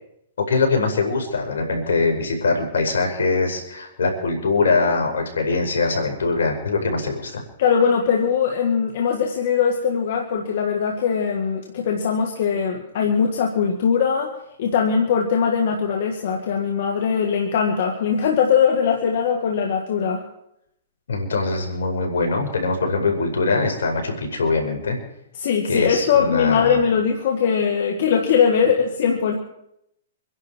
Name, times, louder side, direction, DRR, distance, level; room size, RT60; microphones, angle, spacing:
voice 1, 0.4-7.4 21.1-25.0 25.7-26.8, left 3 dB, 85° left, 2 dB, 5.1 m, -22 dB
voice 2, 7.6-14.3 14.6-20.2 25.4-29.4, left 6 dB, 60° left, 2 dB, 2.2 m, -20 dB
25.5 x 11.0 x 4.7 m, 0.78 s
hypercardioid pair, 135°, 0 cm